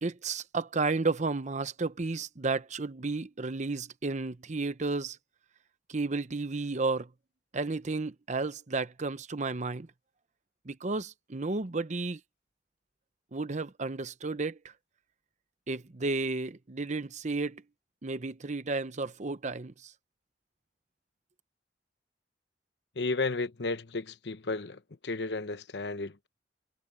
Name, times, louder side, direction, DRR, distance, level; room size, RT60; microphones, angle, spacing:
voice 1, 0.0-5.2 5.9-7.1 7.5-9.9 10.7-12.2 13.3-14.6 15.7-17.6 18.0-19.9, right 3 dB, 45° right, 0.8 m, -32 dB
voice 2, 23.0-26.3, left 3 dB, 70° left, 1.0 m, -33 dB
head